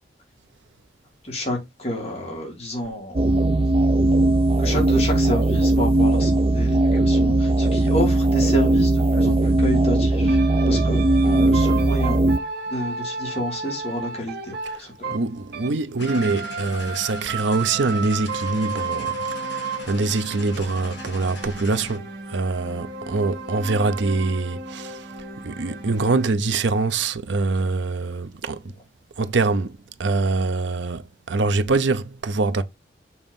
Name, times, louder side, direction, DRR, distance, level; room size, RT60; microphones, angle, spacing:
voice 1, 1.2-3.4 4.6-10.4 10.6-12.2 12.7-14.5 14.8-15.2, left 1 dB, 35° left, 2.5 m, -29 dB
sound 1, 3.2-12.4, right 2 dB, 30° right, 0.4 m, -19 dB
sound 2, 10.3-15.8 16.0-26.3, right 4 dB, 55° right, 1.6 m, -33 dB
voice 2, 15.1-22.0 22.3-25.0 25.4-28.6 29.2-31.0 31.3-32.6, right 3 dB, 80° right, 0.7 m, -24 dB
sound 3, 16.0-22.0, left 1 dB, 70° left, 2.4 m, -39 dB
7.0 x 3.0 x 5.4 m
head